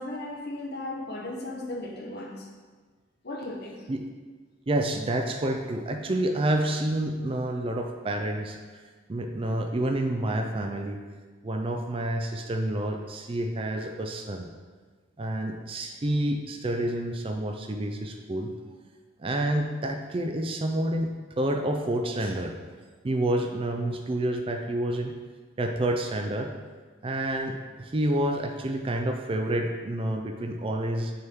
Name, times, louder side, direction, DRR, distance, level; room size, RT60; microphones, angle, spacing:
voice 1, 0.0-2.5 3.2-3.8, left 1 dB, 55° left, 1 dB, 0.8 m, -36 dB
voice 2, 4.7-8.6 9.1-11.0 11.4-14.5 15.2-18.5 19.2-22.5 23.0-25.2 25.6-26.5 27.0-31.1, right 1 dB, 30° right, 4 dB, 0.4 m, -28 dB
6.5 x 4.4 x 3.6 m, 1.4 s
head